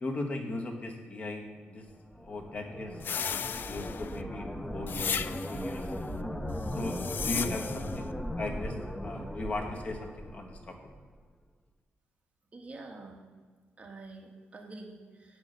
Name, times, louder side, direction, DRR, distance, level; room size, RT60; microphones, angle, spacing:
voice 1, 0.0-1.8 2.2-4.5 4.7-5.8 6.7-8.7 9.0-10.7, left 2 dB, 35° left, 2 dB, 1.5 m, -38 dB
sound 1, 1.9-11.1, equal, 10° left, 0.7 m, -38 dB
sound 2, 3.0-4.2 4.9-5.7 6.7-8.0, left 7 dB, 55° left, 0.4 m, -35 dB
voice 2, 12.5-13.2 13.8-15.4, right 2 dB, 30° right, 1 dB, 1.7 m, -47 dB
8.2 x 6.2 x 6.7 m, 1.5 s
cardioid pair, 105°, 4 cm